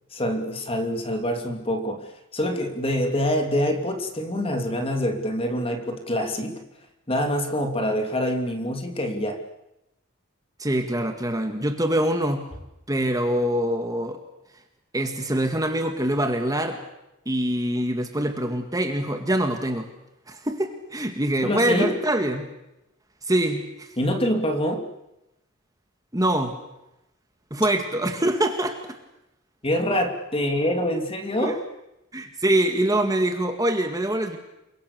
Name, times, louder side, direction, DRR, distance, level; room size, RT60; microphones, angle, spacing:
voice 1, 0.1-6.6 7.1-9.4 21.4-22.0 24.0-24.9 29.6-31.6, equal, 25° left, 6 dB, 3.1 m, -25 dB
voice 2, 10.6-12.4 12.9-14.2 14.9-16.8 17.3-19.9 20.3-22.5 23.3-23.9 26.1-26.6 27.5-29.0 31.4-31.5 32.1-34.4, right 1 dB, 15° right, 6 dB, 2.0 m, -24 dB
28.5 x 23.5 x 6.9 m, 0.89 s
head